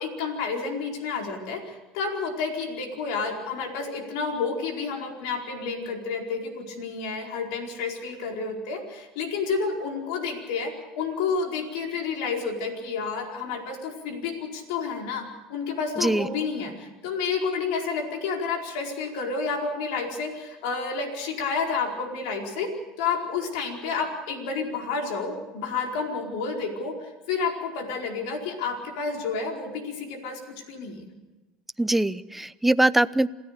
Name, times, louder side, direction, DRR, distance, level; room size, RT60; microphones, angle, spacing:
voice 1, 0.0-22.7 23.0-30.4 30.7-31.0, left 5 dB, 80° left, 2 dB, 4.7 m, -30 dB
voice 2, 16.0-16.3 31.8-33.3, right 1 dB, 5° right, 15 dB, 0.7 m, -22 dB
27.5 x 17.0 x 6.8 m, 1.1 s
supercardioid pair, 110°, 3 cm